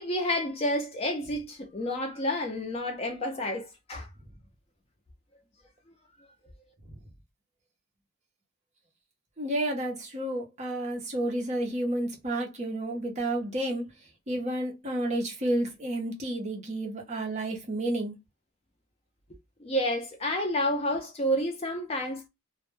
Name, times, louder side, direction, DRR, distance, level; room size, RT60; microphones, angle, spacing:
voice 1, 0.0-4.1 19.6-22.3, left 1 dB, 25° left, 0.4 m, -30 dB
voice 2, 9.4-13.9 14.3-18.1, right 1 dB, 30° right, 0.6 m, -31 dB
2.1 x 2.1 x 2.9 m
head